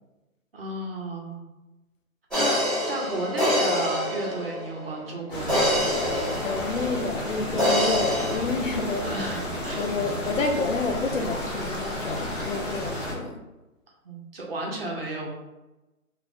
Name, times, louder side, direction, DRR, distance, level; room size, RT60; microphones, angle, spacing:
voice 1, 0.5-1.4 2.4-5.8 9.0-9.8 14.0-15.3, right 1 dB, 40° right, -1 dB, 0.7 m, -32 dB
sound 1, 2.3-4.9 5.5-7.2 7.6-8.4, equal, 5° left, 1.0 m, -25 dB
sound 2, 5.3-13.1, left 1 dB, 35° left, 1.1 m, -32 dB
voice 2, 6.4-9.1 9.8-13.4, left 4 dB, 60° left, 3 dB, 0.6 m, -29 dB
2.9 x 2.4 x 3.5 m, 1.0 s
hypercardioid pair, 160°, 43 cm